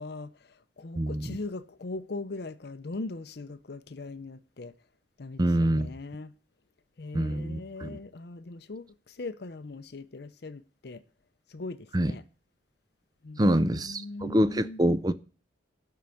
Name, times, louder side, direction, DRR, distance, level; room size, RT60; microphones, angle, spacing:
voice 1, 0.0-4.7 5.2-6.3 7.0-11.0 11.5-12.2 13.2-14.8, left 3 dB, 55° left, 0.6 m, -40 dB
voice 2, 1.0-1.3 5.4-5.9 7.1-8.0 11.9-12.1 13.4-15.1, right 1 dB, 20° right, 0.5 m, -25 dB
12.5 x 4.7 x 7.1 m
head